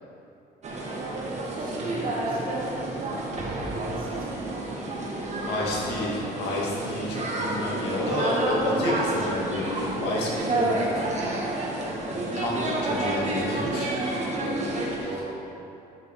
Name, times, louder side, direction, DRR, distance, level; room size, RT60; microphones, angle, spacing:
sound 1, 0.6-15.0, right 2 dB, 40° right, 1.6 m, -29 dB
voice 1, 1.3-2.6 3.5-4.5 10.2-10.5 12.6-13.1 15.0-15.5, right 3 dB, 60° right, -3 dB, 2.0 m, -39 dB
voice 2, 5.4-11.5 12.1-14.0 14.4-14.6 15.0-15.2, left 2 dB, 80° left, -4 dB, 2.2 m, -30 dB
11.5 x 6.7 x 3.6 m, 2.7 s
cardioid pair, 110°, 17 cm